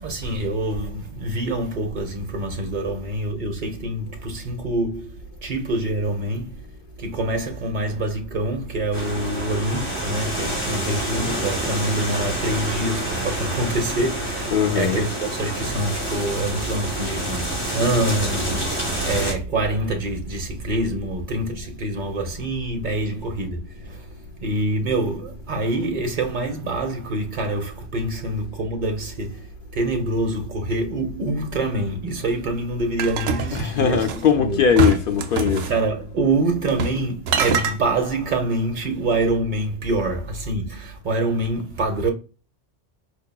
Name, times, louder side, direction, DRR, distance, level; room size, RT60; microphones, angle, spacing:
voice 1, 0.0-6.6 7.0-24.1 24.4-34.1 34.4-34.7 35.7-42.1, right 2 dB, 45° right, 0.9 m, -26 dB
sound 1, 8.9-19.3, right 1 dB, 10° left, 1.9 m, -28 dB
voice 2, 14.5-15.0 33.5-35.7, left 7 dB, 60° left, 0.6 m, -20 dB
sound 2, 33.0-34.3 34.8-35.8 36.7-37.0 37.3-37.8, right 4 dB, 85° right, 0.9 m, -24 dB
4.5 x 2.6 x 2.2 m
omnidirectional pair, 1.2 m